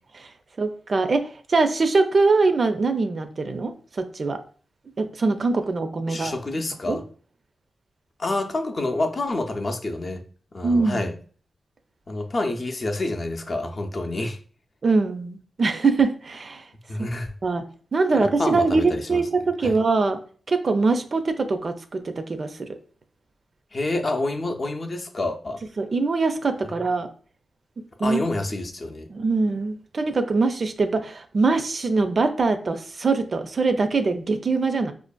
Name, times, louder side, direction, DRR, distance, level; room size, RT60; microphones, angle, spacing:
voice 1, 0.6-4.4 5.0-6.3 6.9-7.0 10.6-11.1 14.8-16.6 17.0-17.1 17.4-17.6 17.9-20.2 20.5-22.5 25.8-27.1 28.0-28.2 29.1-34.9, right 3 dB, 50° right, 0.4 m, -23 dB
voice 2, 6.1-7.0 8.2-10.2 10.5-11.2 12.1-14.4 16.9-17.3 18.1-19.2 19.6-19.7 23.7-25.6 26.7-26.8 28.0-29.1, left 2 dB, 45° left, 0.4 m, -28 dB
4.7 x 2.5 x 2.2 m
cardioid pair, 80°, 0 cm